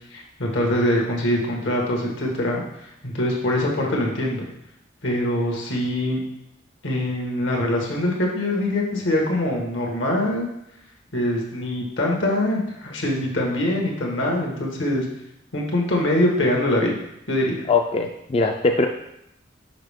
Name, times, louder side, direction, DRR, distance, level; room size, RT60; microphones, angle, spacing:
voice 1, 0.1-4.5 5.0-6.2 6.8-10.5 11.1-15.0 15.5-17.0 17.3-17.6, left 1 dB, 80° left, -1 dB, 1.5 m, -23 dB
voice 2, 17.7-18.9, left 3 dB, 30° left, 3 dB, 0.3 m, -21 dB
5.8 x 5.3 x 3.5 m, 0.81 s
head